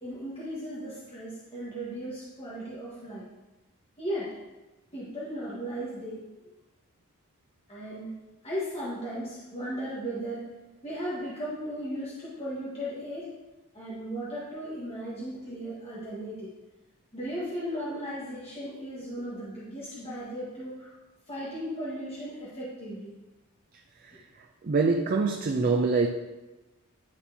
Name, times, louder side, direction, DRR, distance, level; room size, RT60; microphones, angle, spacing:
voice 1, 0.0-3.2 4.0-4.4 4.9-6.2 7.7-8.1 8.4-10.4 10.8-13.3 13.7-16.5 17.1-21.0 21.3-23.1, equal, 25° left, -9 dB, 1.5 m, -36 dB
voice 2, 24.6-26.1, right 4 dB, 40° right, 2 dB, 0.4 m, -24 dB
10.5 x 4.3 x 2.8 m, 1.1 s
head